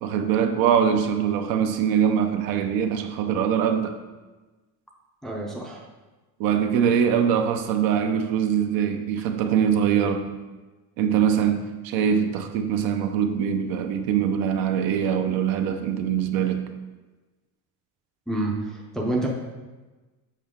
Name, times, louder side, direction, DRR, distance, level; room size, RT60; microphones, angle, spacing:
voice 1, 0.0-4.0 6.4-10.3 11.0-16.7, right 8 dB, 60° right, 6 dB, 0.8 m, -23 dB
voice 2, 5.2-5.8 18.3-19.3, right 2 dB, ahead, -2 dB, 0.5 m, -28 dB
7.5 x 5.6 x 3.6 m, 1.2 s
cardioid pair, 175°, 39 cm